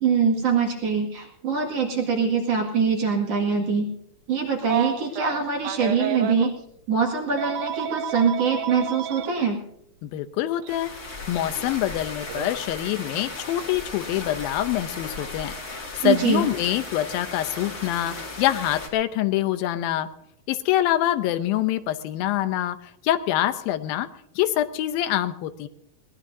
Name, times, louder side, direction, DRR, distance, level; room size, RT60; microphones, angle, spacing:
voice 1, 0.0-3.9 4.3-6.5 6.9-9.6 16.0-16.5, right 5 dB, 45° right, 1 dB, 2.8 m, -23 dB
Telephone, 4.6-6.5 7.4-9.3 10.6-10.8 12.3-12.5, right 10 dB, 75° right, 2.4 m, -30 dB
voice 2, 10.0-10.9 11.3-20.1 20.5-24.1 24.4-25.7, left 13 dB, 80° left, 11 dB, 2.5 m, -25 dB
sound 1, 10.7-18.9, left 3 dB, 30° left, 2.3 m, -36 dB
21.5 x 19.0 x 2.7 m, 0.74 s
omnidirectional pair, 4.2 m